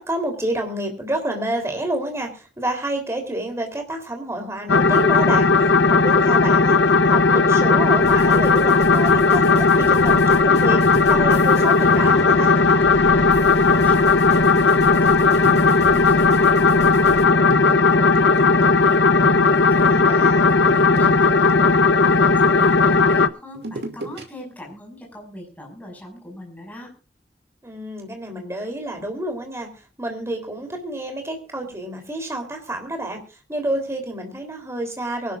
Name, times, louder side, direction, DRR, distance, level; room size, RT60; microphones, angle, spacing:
voice 1, 0.0-5.5 5.9-12.5 19.8-20.5 27.6-29.7 30.0-33.2 33.5-35.4, right 1 dB, 15° right, 4 dB, 3.5 m, -29 dB
sound 1, 4.7-23.3, left 4 dB, 80° left, 0.9 m, -16 dB
sound 2, 8.0-17.3, left 1 dB, 35° left, 2.6 m, -36 dB
sound 3, 10.9-11.4 12.8-13.0 14.7-18.9 19.2-19.8 20.7-22.5 23.5-24.2 24.6-24.7, right 1 dB, 65° right, 2.8 m, -36 dB
voice 2, 13.5-19.0 19.5-21.8 22.1-26.9, left 1 dB, 10° left, 0 dB, 5.9 m, -40 dB
23.5 x 12.0 x 2.5 m, 0.32 s
head